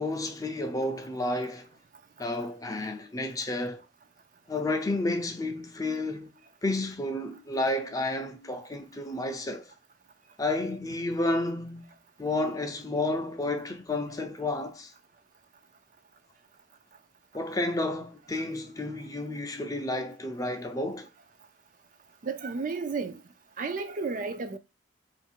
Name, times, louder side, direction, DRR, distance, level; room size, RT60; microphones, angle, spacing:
voice 1, 0.0-1.7 2.2-3.8 4.5-6.3 6.6-9.7 10.4-11.9 12.2-14.9 17.3-21.1, left 2 dB, 20° left, 0.5 m, -31 dB
voice 2, 22.2-23.2 23.6-24.6, right 4 dB, 45° right, 0.5 m, -32 dB
3.9 x 2.5 x 4.4 m
head